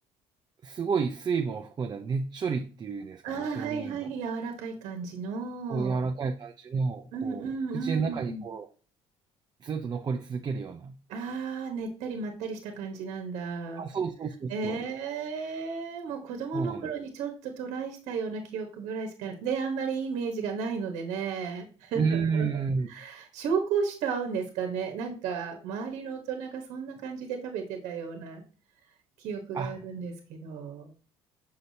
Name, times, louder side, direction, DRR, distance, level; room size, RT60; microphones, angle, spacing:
voice 1, 0.6-3.2 3.5-4.1 5.7-7.5 7.7-8.7 9.6-10.9 13.8-14.8 16.5-16.9 22.0-22.9 29.5-29.7, right 5 dB, 35° right, 5 dB, 0.5 m, -30 dB
voice 2, 3.2-6.1 7.1-8.4 11.1-13.8 14.5-22.5 22.9-28.4 29.2-30.9, right 5 dB, 75° right, 4 dB, 1.2 m, -33 dB
6.2 x 5.6 x 2.7 m, 0.37 s
supercardioid pair, 80°, 12 cm